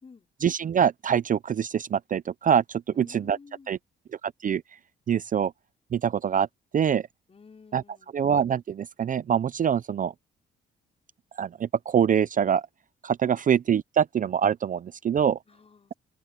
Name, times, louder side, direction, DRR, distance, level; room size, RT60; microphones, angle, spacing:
voice 1, 0.4-3.4 3.7-3.8 4.4-4.6 5.1-5.5 5.9-6.5 6.7-7.0 7.7-7.8 8.1-10.1 11.4-12.6 13.0-15.4, right 8 dB, 40° right, 0.6 m, -24 dB
voice 2, 2.9-3.8 7.3-8.2 13.2-13.4 15.5-15.9, left 5 dB, 30° left, 5.2 m, -52 dB
cardioid pair, 90°, 20 cm